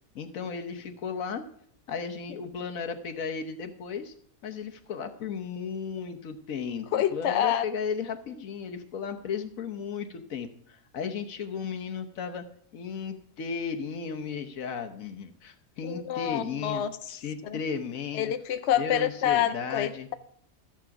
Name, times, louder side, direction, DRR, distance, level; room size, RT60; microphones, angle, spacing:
voice 1, 0.1-1.4 1.9-4.1 4.4-12.4 12.7-16.8 17.1-18.3 18.7-20.1, left 6 dB, 80° left, 6 dB, 1.4 m, -35 dB
voice 2, 6.9-7.6 15.8-17.0 17.4-17.6 18.1-20.1, left 10 dB, 60° left, 10 dB, 0.9 m, -27 dB
13.0 x 7.5 x 5.8 m, 0.66 s
omnidirectional pair, 1.4 m